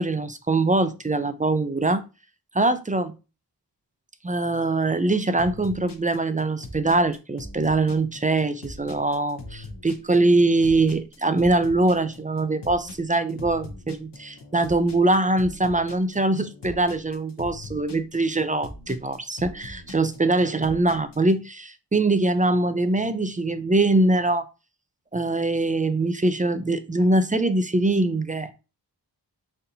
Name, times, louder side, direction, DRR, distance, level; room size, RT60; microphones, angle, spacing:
voice 1, 0.0-2.0 2.5-3.1 4.2-24.4 25.1-28.5, right 2 dB, 20° right, 0.3 m, -23 dB
sound 1, 5.4-21.3, left 2 dB, 70° left, 0.8 m, -41 dB
4.1 x 2.6 x 2.7 m
wide cardioid pair, 55°, 43 cm